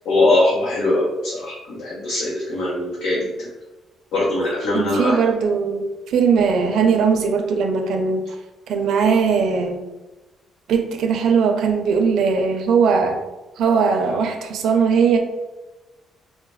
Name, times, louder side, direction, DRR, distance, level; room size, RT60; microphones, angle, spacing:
voice 1, 0.0-3.5 4.1-5.2, left 2 dB, 85° left, -7 dB, 0.9 m, -21 dB
voice 2, 4.7-8.2 8.7-9.8 10.7-13.2 13.6-15.2, right 5 dB, 70° right, 4 dB, 0.5 m, -19 dB
3.9 x 2.1 x 3.0 m, 1.1 s
cardioid pair, 130°, 0 cm